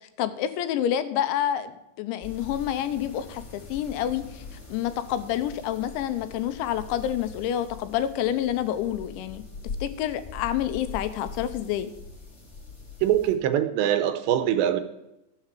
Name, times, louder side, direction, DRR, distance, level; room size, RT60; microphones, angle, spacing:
voice 1, 0.0-1.7 2.0-4.4 4.7-9.4 9.8-11.9, left 11 dB, 80° left, 11 dB, 3.1 m, -28 dB
sound 1, 2.2-13.3, left 4 dB, 15° left, 2.8 m, -42 dB
voice 2, 13.0-14.8, right 11 dB, 85° right, 10 dB, 2.8 m, -23 dB
13.0 x 7.1 x 7.4 m, 0.89 s
omnidirectional pair, 5.3 m